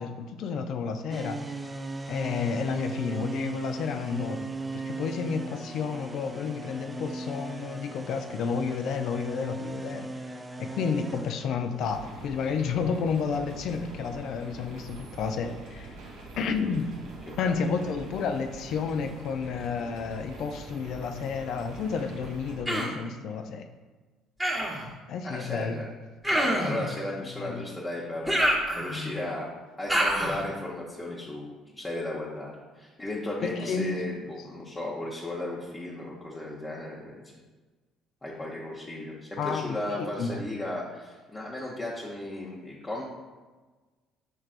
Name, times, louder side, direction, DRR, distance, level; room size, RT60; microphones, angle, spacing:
voice 1, 0.0-1.7 2.1-10.1 10.6-16.0 16.4-16.9 17.4-23.6 25.1-25.8 27.2-27.6 33.4-34.0 39.4-40.4, left 5 dB, 65° left, 7 dB, 0.4 m, -31 dB
sound 1, 1.1-12.6, right 2 dB, 20° right, 0.3 m, -38 dB
sound 2, 11.8-22.6, right 2 dB, 70° right, 0.8 m, -44 dB
voice 2, 17.3-17.8 25.2-25.9 26.3-29.5 29.8-37.2 38.2-43.0, left 1 dB, 20° left, -6 dB, 0.8 m, -35 dB
Human voice, 22.7-23.0 24.4-24.9 26.2-26.8 28.3-29.2 29.9-30.4, equal, ahead, 1.1 m, -26 dB
6.1 x 3.3 x 2.4 m, 1.3 s
supercardioid pair, 75°, 0 cm